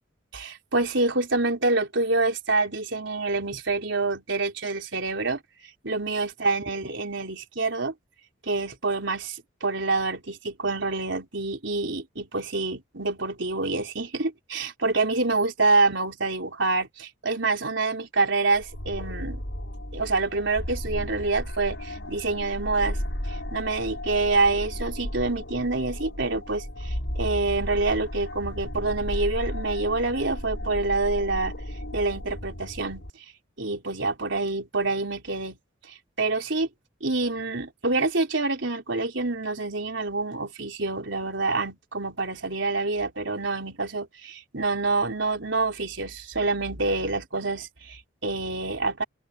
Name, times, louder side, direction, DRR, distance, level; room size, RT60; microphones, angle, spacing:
voice 1, 0.3-5.4 5.8-7.9 8.4-19.4 19.9-23.0 23.3-31.5 31.9-33.0 33.6-35.6 36.2-36.7 37.0-49.0, right 3 dB, 65° right, 3.9 m, -27 dB
sound 1, 18.5-33.1, equal, 70° left, 6.3 m, -34 dB
open air
head